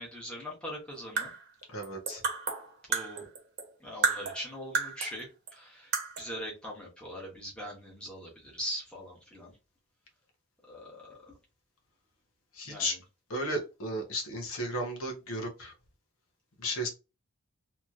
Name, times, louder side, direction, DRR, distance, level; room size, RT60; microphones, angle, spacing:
voice 1, 0.0-1.3 2.9-3.3 3.8-9.5 10.7-11.4 12.6-12.9, equal, 5° left, -4 dB, 1.1 m, -41 dB
sound 1, 0.9-3.7 4.0-5.2 5.5-5.6 5.9-6.3, right 5 dB, 45° right, 0.9 m, -32 dB
voice 2, 1.7-2.2 12.5-13.0 13.3-15.7 16.6-16.9, equal, 70° left, 2 dB, 0.9 m, -34 dB
3.0 x 2.9 x 2.4 m, 0.28 s
head